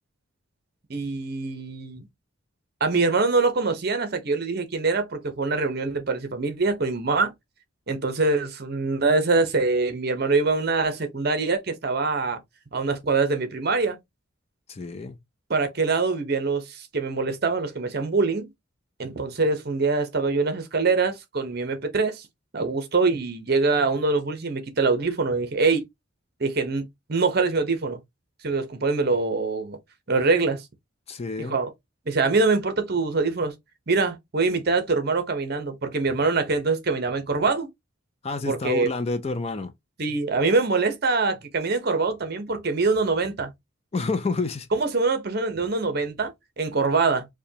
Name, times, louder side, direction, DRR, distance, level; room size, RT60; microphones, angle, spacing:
voice 1, 0.9-2.1 2.8-7.3 7.9-12.4 12.7-14.0 15.5-18.5 19.0-22.3 22.5-25.8 26.4-28.0 28.4-29.8 30.1-30.6 31.5-31.7 32.1-33.5 33.9-37.7 38.5-38.9 40.0-43.5 44.7-47.3, right 3 dB, 50° right, 0.8 m, -24 dB
voice 2, 14.7-15.2 31.1-31.6 38.2-39.7 43.9-44.7, left 3 dB, 30° left, 0.4 m, -29 dB
4.9 x 2.2 x 2.7 m
head